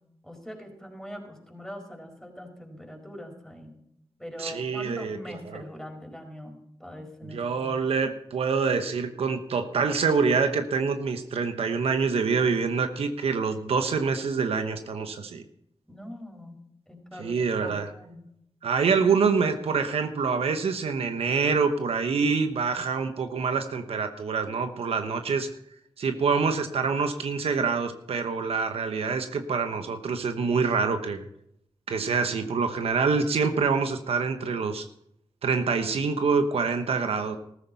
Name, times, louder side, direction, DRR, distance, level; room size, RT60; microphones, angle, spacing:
voice 1, 0.2-3.7 4.2-7.8 15.9-16.6 16.9-18.2, equal, 5° left, 2 dB, 5.0 m, -42 dB
voice 2, 4.4-5.2 5.5-5.6 7.3-15.4 17.2-17.9 18.6-25.5 26.0-31.2 31.9-34.8 35.4-37.4, right 5 dB, 85° right, 7 dB, 1.1 m, -26 dB
14.5 x 14.0 x 4.1 m, 0.74 s
cardioid pair, 50°, 10 cm